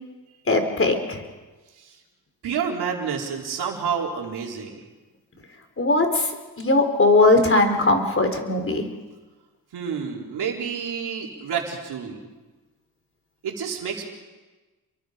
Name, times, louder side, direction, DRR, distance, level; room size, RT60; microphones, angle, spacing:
voice 1, 0.5-1.2 5.8-6.3 6.6-8.9, left 2 dB, 35° left, 6 dB, 4.1 m, -19 dB
voice 2, 2.4-4.7 9.7-12.2 13.4-14.0, right 6 dB, 90° right, 0 dB, 4.3 m, -29 dB
29.5 x 23.0 x 5.2 m, 1.2 s
cardioid pair, 85°, 38 cm